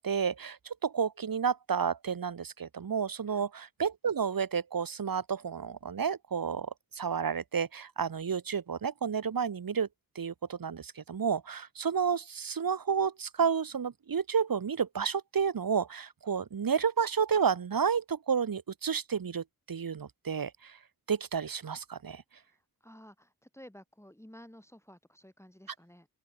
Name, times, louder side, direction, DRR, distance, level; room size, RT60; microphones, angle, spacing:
voice 1, 0.0-9.9 10.1-20.8 21.1-22.2, right 6 dB, 80° right, 1.3 m, -31 dB
voice 2, 22.4-26.1, equal, 10° left, 4.9 m, -54 dB
open air
cardioid pair, 45°, 34 cm